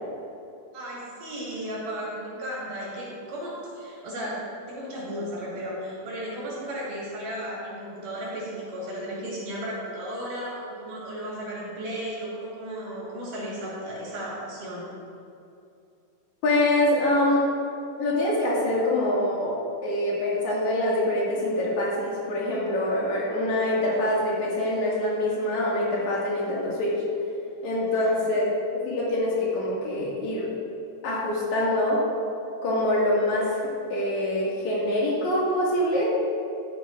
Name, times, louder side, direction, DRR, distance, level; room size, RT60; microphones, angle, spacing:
voice 1, 0.7-14.9 27.9-28.2, equal, 90° right, -6 dB, 4.3 m, -35 dB
voice 2, 16.4-17.4 18.0-19.6 19.8-27.0 27.6-28.4 28.7-30.5 31.0-32.0 32.6-36.2, left 1 dB, 65° left, -6 dB, 3.5 m, -25 dB
13.0 x 6.1 x 4.9 m, 2.6 s
omnidirectional pair, 3.6 m